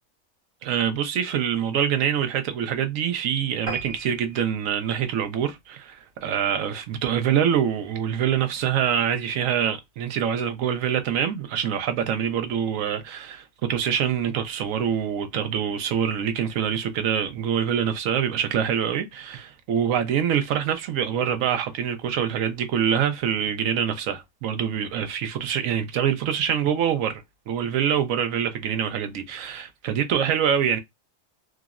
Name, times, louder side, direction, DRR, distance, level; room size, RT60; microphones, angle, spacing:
voice 1, 0.6-30.8, right 8 dB, 80° right, 1.0 m, -25 dB
sound 1, 3.7-6.4 6.9-7.1 7.5-7.6 7.9-8.0 8.3-8.4, right 4 dB, 35° right, 0.5 m, -38 dB
3.6 x 2.0 x 2.3 m
omnidirectional pair, 1.4 m